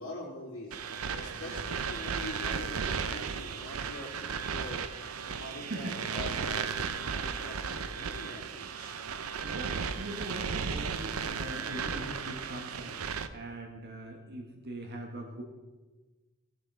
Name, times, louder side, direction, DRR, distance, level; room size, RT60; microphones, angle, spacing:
voice 1, 0.0-9.0, left 1 dB, 65° left, -8 dB, 3.4 m, -44 dB
sound 1, 0.7-13.3, right 6 dB, 85° right, 0.6 m, -35 dB
voice 2, 1.1-1.6 5.6-6.5 9.4-15.4, right 1 dB, 50° right, 2 dB, 1.5 m, -42 dB
17.0 x 7.4 x 4.9 m, 1.2 s
head